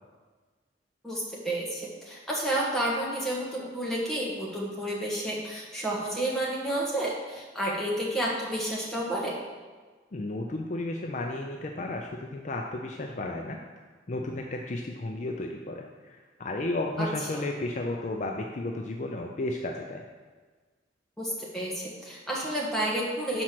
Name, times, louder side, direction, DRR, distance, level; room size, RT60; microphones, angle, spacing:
voice 1, 1.0-9.3 17.0-17.1 17.3-17.4 21.2-23.4, right 1 dB, ahead, -5 dB, 1.4 m, -30 dB
voice 2, 10.1-13.6 14.1-20.0, left 2 dB, 40° left, 2 dB, 0.4 m, -33 dB
6.2 x 4.4 x 5.9 m, 1.4 s
head